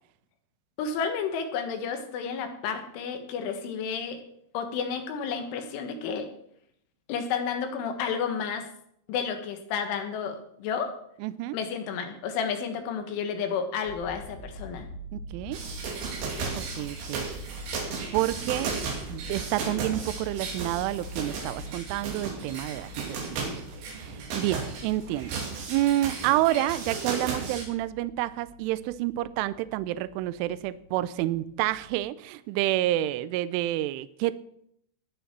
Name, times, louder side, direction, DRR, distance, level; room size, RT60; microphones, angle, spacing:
voice 1, 0.8-4.2 4.5-6.3 7.1-8.7 9.1-10.9 11.5-14.9, left 6 dB, 70° left, 6 dB, 3.8 m, -31 dB
voice 2, 11.2-11.6 15.1-15.6 16.5-17.3 18.1-18.8 19.1-23.5 23.8-25.4 25.7-34.4, right 15 dB, 80° right, 15 dB, 2.9 m, -29 dB
sound 1, 13.9-31.9, equal, 30° left, 2.3 m, -45 dB
sound 2, 15.5-27.6, right 4 dB, 60° right, 4.6 m, -35 dB
19.5 x 6.9 x 6.0 m, 0.70 s
omnidirectional pair, 6.0 m